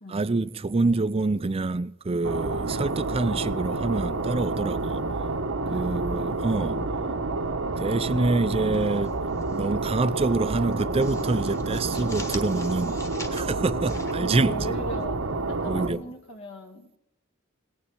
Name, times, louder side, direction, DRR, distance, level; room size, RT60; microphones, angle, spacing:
voice 1, 0.1-5.1 5.7-6.8 7.8-9.1 9.5-13.0 13.3-14.8 15.7-16.0, right 3 dB, 30° right, 0.4 m, -26 dB
sound 1, 2.2-15.9, right 3 dB, 85° right, 1.1 m, -29 dB
sound 2, 8.8-9.6 9.9-10.1 10.5-15.0, left 2 dB, 15° left, 1.2 m, -44 dB
voice 2, 14.2-15.2 15.5-16.9, right 1 dB, 65° left, 1.5 m, -38 dB
18.0 x 7.0 x 9.2 m
head